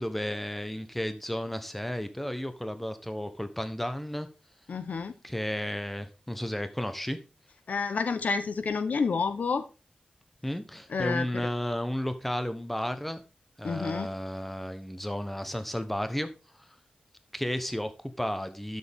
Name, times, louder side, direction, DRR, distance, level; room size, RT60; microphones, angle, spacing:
voice 1, 0.0-4.3 5.2-7.2 10.4-13.2 13.6-16.3 16.6-16.7 17.3-18.8, equal, 5° left, 1.1 m, -33 dB
voice 2, 4.7-5.1 7.7-9.6 10.9-11.3 13.6-14.1, left 5 dB, 75° left, 0.9 m, -29 dB
11.5 x 6.7 x 3.6 m
wide cardioid pair, 95°, 3 cm